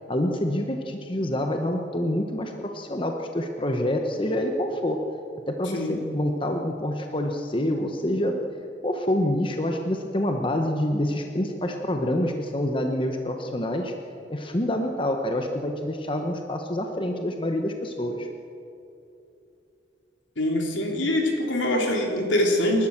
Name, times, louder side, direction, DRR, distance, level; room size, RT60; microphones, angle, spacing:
voice 1, 0.1-5.0 5.5-8.4 8.8-13.9 14.3-18.3, left 1 dB, 25° left, 4 dB, 1.1 m, -27 dB
voice 2, 20.4-22.9, left 1 dB, 80° left, 1 dB, 3.5 m, -24 dB
28.5 x 12.5 x 7.3 m, 2.8 s
head